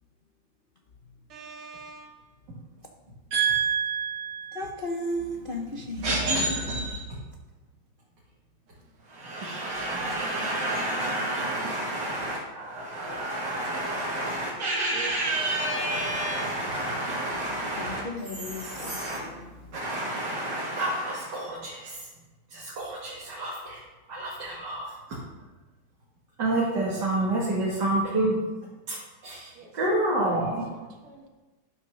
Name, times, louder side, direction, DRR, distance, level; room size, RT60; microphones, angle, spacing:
voice 1, 1.3-2.2 9.4-11.8 14.9-15.6 29.6-29.8 30.4-31.3, right 3 dB, 90° right, 2.4 m, -45 dB
voice 2, 3.3-4.6 6.0-7.0 9.1-18.0 18.3-19.2 19.7-21.9 22.5-23.8 24.1-24.9 26.4-28.4 28.9-29.0 29.2-29.5 29.7-30.7, right 2 dB, 55° right, 2.5 m, -29 dB
voice 3, 4.6-6.2 17.8-19.3, equal, 80° left, 0.4 m, -34 dB
11.0 x 6.1 x 6.3 m
omnidirectional pair, 2.3 m